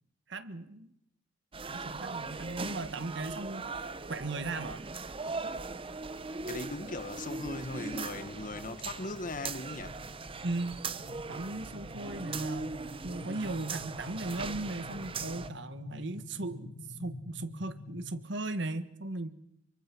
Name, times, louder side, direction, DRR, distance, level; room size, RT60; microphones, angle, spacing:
voice 1, 0.3-0.9 1.7-3.6 4.1-4.8 10.4-10.8 11.1-16.7 17.0-19.3, right 2 dB, 65° right, 1.6 m, -37 dB
sound 1, 1.5-15.5, right 4 dB, 30° right, 0.8 m, -40 dB
sound 2, 6.0-18.2, left 2 dB, 65° left, 1.1 m, -49 dB
voice 2, 6.5-10.0, left 2 dB, 45° left, 1.5 m, -39 dB
25.5 x 24.0 x 6.2 m
head